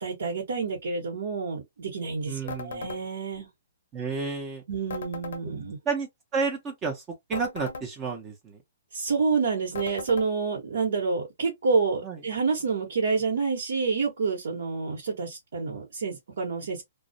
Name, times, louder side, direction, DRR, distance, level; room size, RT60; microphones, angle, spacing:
voice 1, 0.0-3.5 4.7-5.8 8.9-16.8, right 4 dB, 75° right, 1.0 m, -28 dB
voice 2, 2.3-2.9 3.9-4.6 5.9-7.0 7.3-8.6 12.0-12.2, right 5 dB, 20° right, 0.6 m, -31 dB
sound 1, 2.5-3.0 4.9-5.4 7.3-7.9 9.7-10.3, left 4 dB, 75° left, 0.6 m, -37 dB
2.3 x 2.0 x 2.6 m
hypercardioid pair, 145°, 0 cm